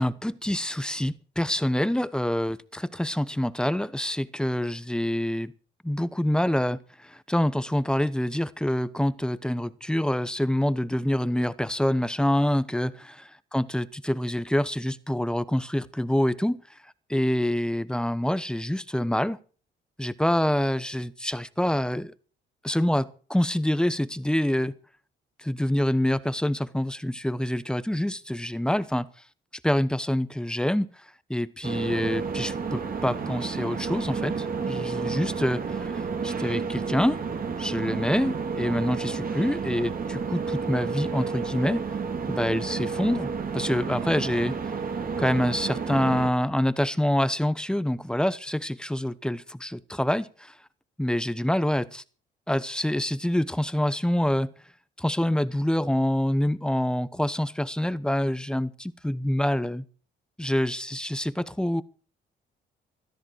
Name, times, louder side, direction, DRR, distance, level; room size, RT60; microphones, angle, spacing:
voice 1, 0.0-5.5 5.8-16.6 17.1-19.4 20.0-22.1 22.6-24.7 25.4-29.1 29.6-30.9 31.3-37.2 37.6-41.9 42.3-44.6 45.2-50.5 51.0-52.0 52.5-54.5 55.0-59.8 60.4-61.8, left 1 dB, 5° left, 1.0 m, -26 dB
sound 1, 31.6-46.3, right 5 dB, 45° right, 2.6 m, -31 dB
16.0 x 13.0 x 4.6 m
cardioid pair, 90°, 20 cm